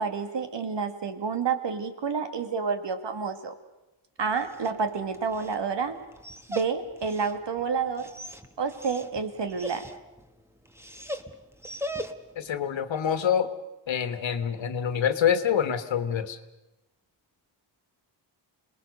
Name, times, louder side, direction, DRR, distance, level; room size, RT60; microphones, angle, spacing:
voice 1, 0.0-3.5 4.2-6.0 6.5-8.1 8.6-9.9, right 5 dB, 65° right, 8 dB, 2.2 m, -29 dB
Dog, 4.2-12.5, equal, 5° right, 1.3 m, -41 dB
voice 2, 12.4-13.5 13.9-16.4, left 8 dB, 80° left, 10 dB, 1.6 m, -26 dB
26.5 x 20.5 x 6.6 m, 1.0 s
cardioid pair, 85°, 45 cm